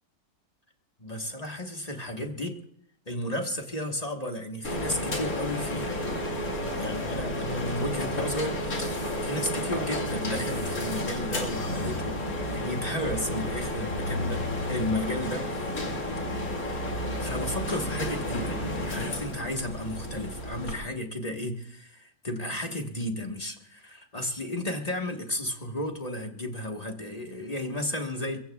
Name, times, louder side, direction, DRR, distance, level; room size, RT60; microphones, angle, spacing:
voice 1, 1.0-2.6 3.1-6.1 6.5-8.9 9.2-15.5 16.8-28.4, left 1 dB, 25° left, 3 dB, 1.3 m, -33 dB
sound 1, 4.6-20.8, left 1 dB, 50° left, 2.8 m, -31 dB
23.0 x 22.0 x 2.3 m, 0.71 s
omnidirectional pair, 1.9 m